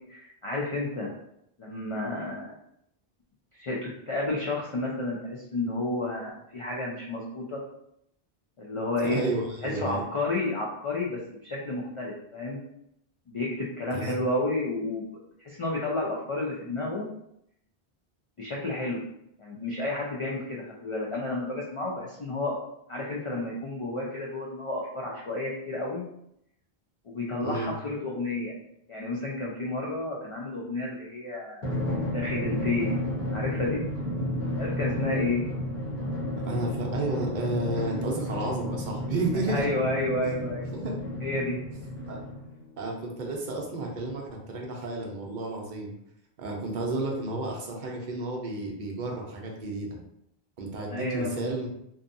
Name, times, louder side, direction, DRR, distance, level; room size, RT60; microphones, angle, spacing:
voice 1, 0.1-1.1 1.6-2.5 3.5-7.6 8.6-9.2 9.6-12.6 13.3-15.0 15.4-17.1 18.4-19.0 19.4-22.6 22.9-26.0 27.1-28.5 28.9-31.7 32.1-32.9 33.3-33.8 34.6-35.5 37.9-38.0 39.5-40.7 41.2-41.6 50.9-51.4, left 2 dB, 60° left, -3 dB, 0.3 m, -31 dB
voice 2, 9.0-10.0 13.9-14.2 27.4-27.7 36.4-39.7 40.7-41.0 42.1-42.2 42.8-45.9 46.4-50.0 50.6-51.7, right 2 dB, 55° right, -1 dB, 0.7 m, -32 dB
Drum, 31.6-42.7, left 1 dB, 40° left, 0.9 m, -32 dB
2.7 x 2.3 x 2.5 m, 0.75 s
omnidirectional pair, 1.0 m